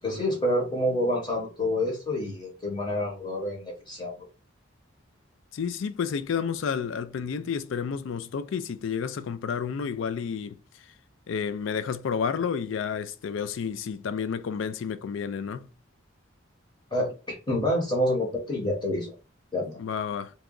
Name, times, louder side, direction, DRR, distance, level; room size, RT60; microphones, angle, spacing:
voice 1, 0.0-4.1 16.9-19.1 19.5-19.8, left 1 dB, 20° left, 0.8 m, -28 dB
voice 2, 5.5-10.9 11.3-15.7 19.8-20.3, left 6 dB, 70° left, 0.3 m, -31 dB
2.9 x 2.3 x 3.7 m
head